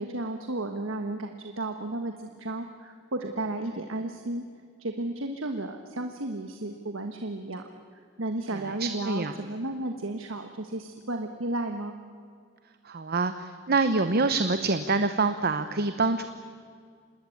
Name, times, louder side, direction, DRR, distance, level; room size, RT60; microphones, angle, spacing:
voice 1, 0.0-4.4 4.8-7.7 8.2-11.9, right 2 dB, 70° right, 5 dB, 1.4 m, -33 dB
voice 2, 8.8-9.3 12.9-16.3, right 3 dB, 50° right, 10 dB, 0.9 m, -26 dB
27.0 x 20.0 x 8.6 m, 2.2 s
head